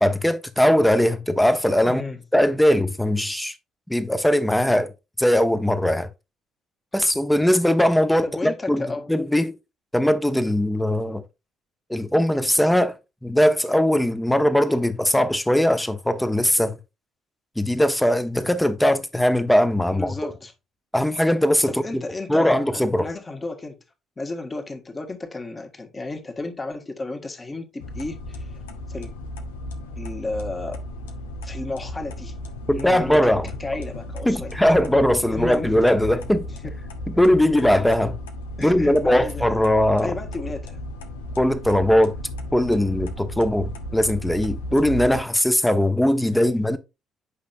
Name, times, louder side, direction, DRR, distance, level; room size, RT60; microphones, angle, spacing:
voice 1, 0.0-2.1 2.3-3.5 3.9-4.9 5.2-6.1 6.9-9.6 9.9-11.2 11.9-12.9 13.2-16.8 17.6-20.1 20.9-21.7 22.3-23.1 32.7-33.5 34.3-36.5 37.2-38.1 38.6-40.1 41.4-42.1 42.5-46.8, left 1 dB, 5° left, 1.0 m, -20 dB
voice 2, 1.8-2.2 8.2-9.1 19.9-20.5 21.7-23.8 24.2-28.6 28.9-29.1 30.0-30.8 31.4-32.3 32.7-34.5 35.3-35.8 36.6-36.8 37.1-37.2 37.6-37.7 38.6-39.4 40.0-40.8 46.3-46.6, left 2 dB, 25° left, 1.6 m, -33 dB
sound 1, 27.8-45.2, left 1 dB, 75° left, 0.8 m, -35 dB
8.5 x 5.4 x 2.6 m
figure-of-eight pair, 50°, 0 cm